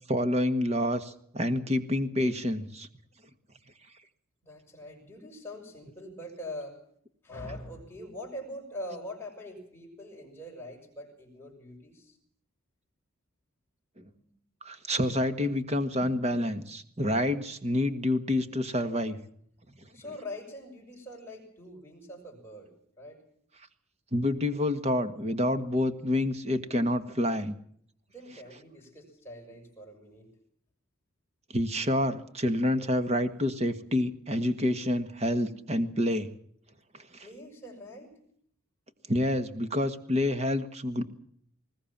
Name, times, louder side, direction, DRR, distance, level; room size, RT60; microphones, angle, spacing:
voice 1, 0.1-2.9 14.0-14.1 14.6-19.2 24.1-27.5 31.5-36.3 37.1-37.3 39.1-41.0, left 1 dB, 30° right, 9 dB, 1.6 m, -28 dB
voice 2, 4.4-6.8 7.2-12.2 14.1-14.3 19.9-23.2 28.1-30.3 37.2-38.1, left 1 dB, 10° left, 0 dB, 6.5 m, -43 dB
21.0 x 19.5 x 7.3 m, 0.65 s
head